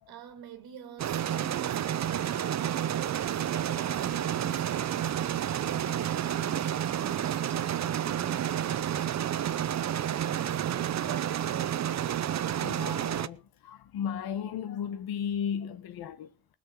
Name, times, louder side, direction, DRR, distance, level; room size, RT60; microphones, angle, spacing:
voice 1, 0.1-9.1 9.4-9.9 10.5-12.1, right 8 dB, 85° right, 1.8 m, -47 dB
sound 1, 1.0-13.3, right 10 dB, 50° right, 0.7 m, -30 dB
voice 2, 12.6-16.5, left 8 dB, 80° left, 1.2 m, -35 dB
20.0 x 6.7 x 6.5 m
cardioid pair, 100°, 36 cm